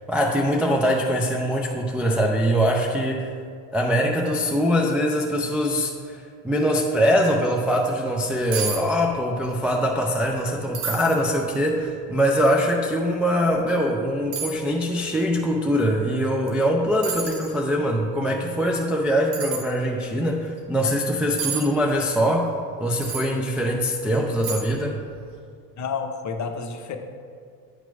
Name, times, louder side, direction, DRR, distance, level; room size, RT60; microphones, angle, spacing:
voice 1, 0.0-3.3 3.7-22.5 22.8-25.0, equal, 5° right, -1 dB, 0.4 m, -23 dB
sound 1, 8.5-8.8 9.1-9.6 10.0-10.1 10.7-11.2 11.8-11.9 13.4-13.5 14.3-14.6 16.5-16.6 17.0-17.5 19.3-19.6 21.4-21.6 23.0-23.3 23.9-24.0 24.4-24.8 25.1-25.3, right 6 dB, 80° right, 1.2 m, -30 dB
voice 2, 25.8-27.0, left 5 dB, 35° left, 5 dB, 0.8 m, -30 dB
8.8 x 3.0 x 5.7 m, 2.2 s
hypercardioid pair, 85°, 49 cm